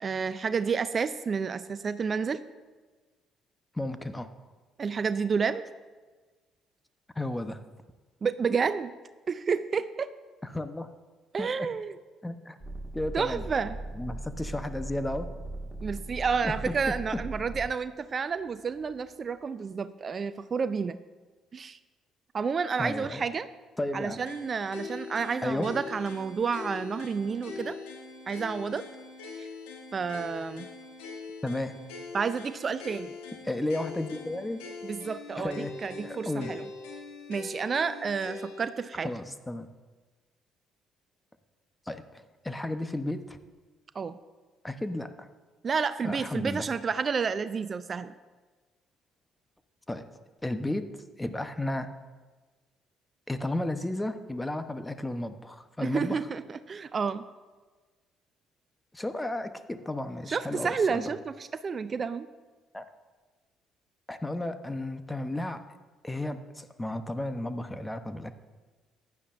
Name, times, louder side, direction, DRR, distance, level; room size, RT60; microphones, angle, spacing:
voice 1, 0.0-2.4 4.8-5.6 8.2-8.9 9.3-10.1 11.3-11.9 13.1-13.8 15.8-21.0 21.5-21.8 22.3-23.5 23.9-27.8 28.3-28.9 29.4-29.5 29.9-30.6 32.1-33.1 34.8-36.6 37.3-39.1 43.9-44.2 45.6-48.1 55.8-57.2 60.3-62.3, right 5 dB, 40° right, 14 dB, 0.4 m, -30 dB
voice 2, 3.7-4.3 7.1-7.6 10.4-10.9 11.4-11.7 12.2-12.6 12.9-13.5 13.9-15.3 16.4-16.7 17.1-17.2 22.8-23.2 23.8-24.2 25.4-25.7 31.4-31.7 33.4-34.6 35.4-35.7 36.0-36.5 39.0-39.7 41.9-43.4 44.6-45.3 46.0-46.7 49.9-50.1 50.4-51.9 53.3-56.2 58.9-61.1 62.7-62.9 64.1-65.7 66.0-68.3, left 1 dB, 15° left, 10 dB, 0.9 m, -33 dB
sound 1, 12.6-17.7 18.4-19.1, right 2 dB, 10° right, 1.8 m, -39 dB
sound 2, 24.3-38.7, left 4 dB, 75° left, 1.5 m, -42 dB
15.0 x 10.5 x 2.6 m, 1.3 s
hypercardioid pair, 50°, 0 cm